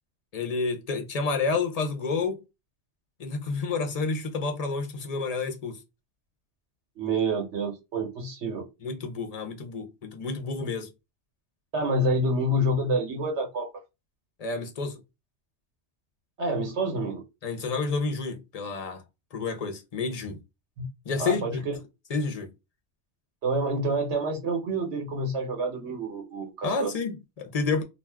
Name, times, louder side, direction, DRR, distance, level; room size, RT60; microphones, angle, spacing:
voice 1, 0.3-2.4 3.2-5.8 8.8-10.9 14.4-15.0 17.4-19.0 19.3-20.4 21.0-21.6 22.1-22.5 26.6-27.8, left 4 dB, 45° left, 0.6 m, -29 dB
voice 2, 7.0-8.6 11.7-13.7 16.4-17.2 20.8-20.9 21.2-21.6 23.4-26.9, right 1 dB, 80° right, 1.2 m, -28 dB
2.5 x 2.2 x 3.3 m
omnidirectional pair, 1.1 m